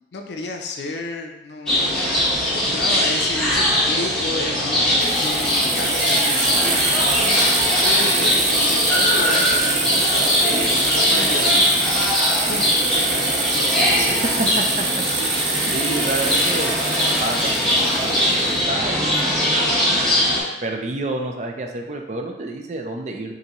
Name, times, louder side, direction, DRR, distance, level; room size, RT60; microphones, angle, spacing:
voice 1, 0.1-6.8 7.8-11.8 12.5-14.2 15.9-16.1, left 2 dB, 70° left, 3 dB, 0.5 m, -32 dB
sound 1, 1.7-20.4, left 1 dB, 5° left, 1.0 m, -20 dB
sound 2, 5.0-18.6, right 4 dB, 80° right, 0.7 m, -25 dB
voice 2, 14.4-14.8 15.2-15.4 15.7-16.7 17.2-19.5 20.3-23.4, right 2 dB, 40° right, 3 dB, 0.4 m, -29 dB
5.5 x 2.7 x 3.0 m, 0.98 s
head